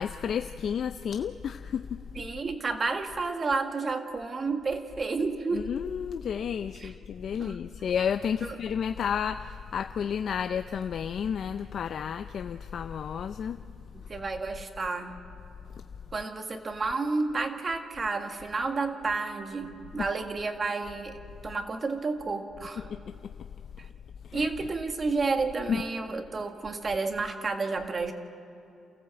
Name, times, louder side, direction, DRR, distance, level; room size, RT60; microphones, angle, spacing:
voice 1, 0.0-2.0 5.5-13.6 22.9-23.0 24.2-24.5 25.7-25.8, left 7 dB, 60° left, 9 dB, 0.5 m, -31 dB
voice 2, 2.2-5.7 6.7-6.9 7.4-7.6 8.4-8.6 13.9-15.2 16.1-22.9 23.8-23.9 24.3-28.1, right 3 dB, 35° right, 5 dB, 1.8 m, -31 dB
28.5 x 14.5 x 7.8 m, 2.8 s
cardioid pair, 90°, 0 cm